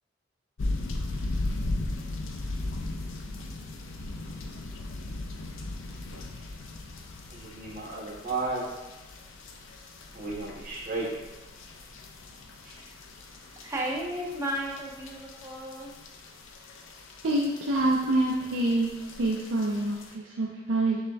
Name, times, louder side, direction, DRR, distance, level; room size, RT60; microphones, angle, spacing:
sound 1, 0.6-20.1, left 2 dB, 80° left, 0.5 m, -38 dB
voice 1, 7.3-8.6 10.1-11.1 12.6-12.7, right 3 dB, 40° right, -6 dB, 1.2 m, -33 dB
voice 2, 13.3-15.9, right 1 dB, 15° right, -2 dB, 0.6 m, -34 dB
voice 3, 17.2-21.0, right 2 dB, 75° right, -3 dB, 0.5 m, -26 dB
6.3 x 2.2 x 3.4 m, 1.1 s
head